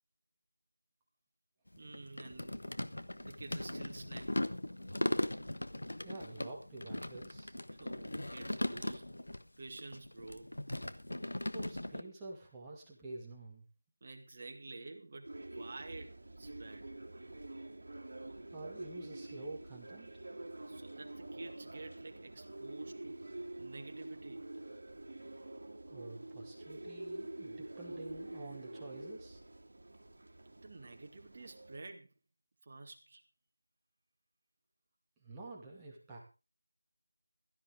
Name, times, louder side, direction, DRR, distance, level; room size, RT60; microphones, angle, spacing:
sound 1, 1.7-9.4 9.7-12.0, left 1 dB, 75° left, 1.3 m, -39 dB
voice 1, 1.8-2.6 3.1-4.3 7.7-9.1 9.6-10.5 14.0-16.9 20.7-24.4 30.6-32.1 32.6-33.2, right 3 dB, 35° right, 4 dB, 2.0 m, -50 dB
voice 2, 6.0-7.5 11.5-13.6 18.5-20.1 25.9-29.4 35.2-36.2, right 2 dB, 10° right, -3 dB, 2.3 m, -48 dB
sound 2, 15.2-31.8, right 2 dB, 55° right, 2.7 m, -47 dB
16.5 x 13.0 x 3.7 m, 0.32 s
figure-of-eight pair, 170°, 0 cm